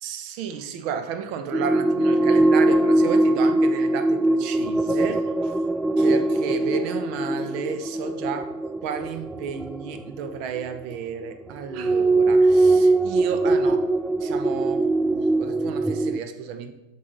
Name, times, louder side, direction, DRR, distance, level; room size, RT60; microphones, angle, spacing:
voice 1, 0.0-5.6 6.0-8.6 8.8-13.9 14.2-16.7, right 7 dB, 45° right, 0.7 m, -32 dB
sound 1, 1.5-10.8 11.7-16.2, right 2 dB, 5° right, 0.3 m, -21 dB
8.5 x 5.6 x 3.9 m
figure-of-eight pair, 90°, 0 cm